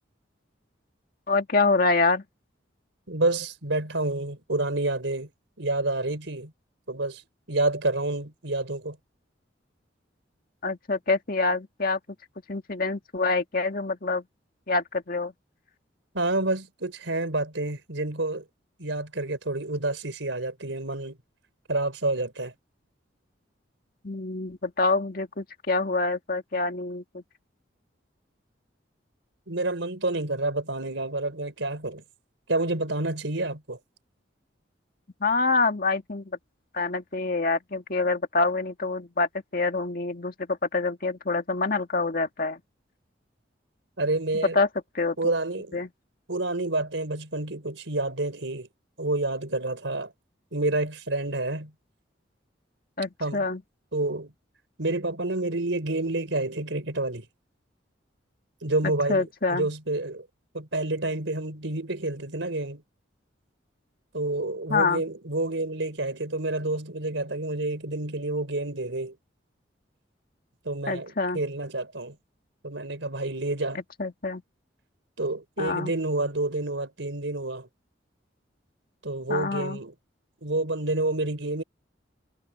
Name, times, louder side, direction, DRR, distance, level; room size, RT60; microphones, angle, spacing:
voice 1, 1.3-2.2 10.6-12.0 12.5-14.2 14.7-15.3 24.0-27.2 35.2-36.4 36.7-42.6 44.5-44.7 44.9-45.2 45.7-45.9 53.0-53.6 58.8-59.7 64.7-65.0 70.9-71.4 73.7-74.4 75.6-75.9 79.3-79.8, left 3 dB, 50° left, 1.9 m, -26 dB
voice 2, 3.1-5.3 5.6-6.5 6.9-7.2 7.5-9.0 16.1-18.4 18.8-21.2 21.7-22.5 29.5-32.0 32.5-33.8 44.0-44.6 45.2-45.9 46.3-48.7 49.0-50.1 50.5-51.7 53.2-53.5 53.9-54.3 54.8-57.3 58.6-60.3 60.5-62.8 64.1-69.2 70.6-72.2 72.6-73.8 75.2-77.7 79.0-79.9 80.4-81.6, right 2 dB, 80° right, 4.0 m, -29 dB
head